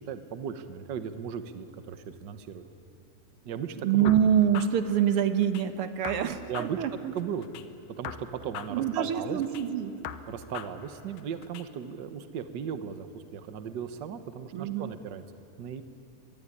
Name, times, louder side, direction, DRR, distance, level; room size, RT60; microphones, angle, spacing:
voice 1, 0.1-2.7 3.4-4.1 6.5-6.8 7.1-7.5 8.0-9.4 10.3-15.2 15.6-15.8, right 8 dB, 85° right, 9 dB, 0.9 m, -36 dB
voice 2, 3.8-7.1 8.7-10.0 14.5-15.0, right 9 dB, 60° right, 9 dB, 1.5 m, -26 dB
sound 1, 4.1-5.7 6.0-7.7 8.0-9.7 10.0-11.7, left 9 dB, 80° left, 2.5 m, -42 dB
23.5 x 22.5 x 9.8 m, 2.5 s
omnidirectional pair, 3.6 m